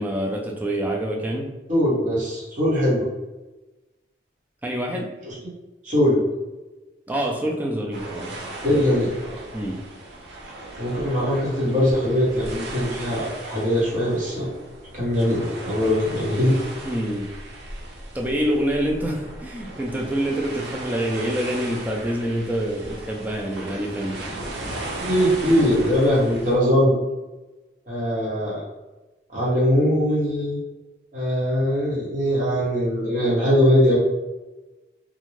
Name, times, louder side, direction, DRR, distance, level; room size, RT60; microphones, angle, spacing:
voice 1, 0.0-1.5 4.6-5.1 7.1-8.3 9.5-9.8 16.8-17.3 18.1-24.2, right 1 dB, 10° right, -1 dB, 0.3 m, -26 dB
voice 2, 1.7-3.0 5.4-5.5 5.8-6.2 8.6-9.4 10.8-14.5 14.9-16.5 25.0-27.0 27.9-28.6 29.3-30.6 31.1-34.0, equal, 40° right, -6 dB, 1.1 m, -21 dB
sound 1, 7.9-26.5, right 2 dB, 75° right, 0.7 m, -37 dB
2.5 x 2.2 x 3.1 m, 1.1 s
head